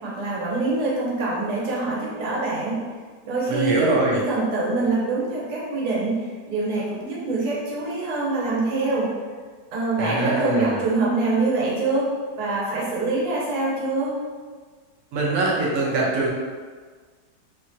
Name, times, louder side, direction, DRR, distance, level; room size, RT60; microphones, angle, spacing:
voice 1, 0.0-2.8 3.2-9.1 9.7-12.1 12.4-14.1, right 3 dB, 85° right, -6 dB, 1.3 m, -25 dB
voice 2, 3.5-4.2 10.0-10.8 15.1-16.3, right 2 dB, 65° right, -4 dB, 0.9 m, -23 dB
3.0 x 2.2 x 2.6 m, 1.5 s
omnidirectional pair, 1.6 m